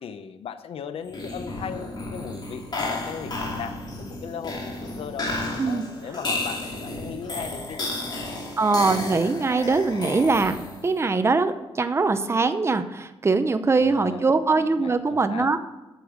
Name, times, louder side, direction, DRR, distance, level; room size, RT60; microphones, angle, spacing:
voice 1, 0.0-5.3 5.7-7.9 13.7-14.4 14.7-15.5, left 7 dB, 75° left, 10 dB, 0.7 m, -37 dB
sound 1, 1.1-11.0, left 2 dB, 45° left, 2.6 m, -32 dB
voice 2, 8.6-15.6, right 3 dB, 25° right, 9 dB, 0.7 m, -22 dB
9.3 x 6.8 x 6.2 m, 1.1 s
cardioid pair, 100°, 10 cm